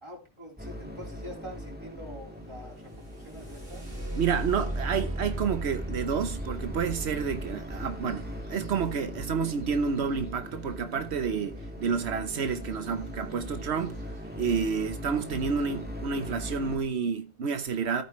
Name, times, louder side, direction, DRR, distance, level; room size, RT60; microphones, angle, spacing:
voice 1, 0.0-3.9, equal, 25° right, 4.0 m, -45 dB
sound 1, 0.6-16.8, equal, 10° right, 1.9 m, -40 dB
sound 2, 2.8-10.7 12.7-12.9 13.3-13.9 14.5-14.6 15.1-15.4, right 1 dB, 60° right, 3.8 m, -37 dB
voice 2, 4.2-18.0, right 6 dB, 85° right, 1.2 m, -30 dB
14.0 x 8.9 x 3.2 m
omnidirectional pair, 1.1 m